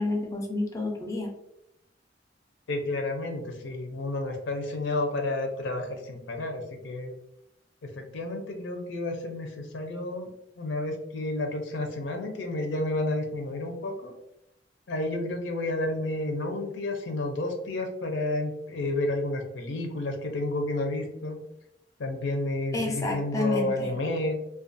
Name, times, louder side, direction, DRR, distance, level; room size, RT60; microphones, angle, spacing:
voice 1, 0.0-1.3 22.7-23.9, left 2 dB, 20° left, 1 dB, 0.4 m, -29 dB
voice 2, 2.7-7.1 7.8-10.3 10.6-14.1 14.9-21.4 22.0-24.4, left 2 dB, 90° left, 3 dB, 0.5 m, -31 dB
2.4 x 2.2 x 2.5 m, 0.81 s
head